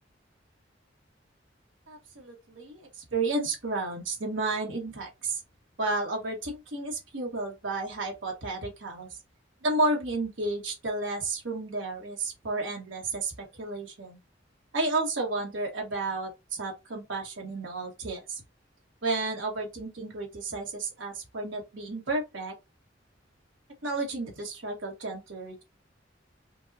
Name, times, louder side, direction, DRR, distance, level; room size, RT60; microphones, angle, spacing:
voice 1, 1.9-5.4 5.8-9.1 9.6-14.2 14.7-18.4 19.0-22.5 23.8-25.6, right 2 dB, 90° right, 1.1 m, -32 dB
5.1 x 2.1 x 2.5 m
head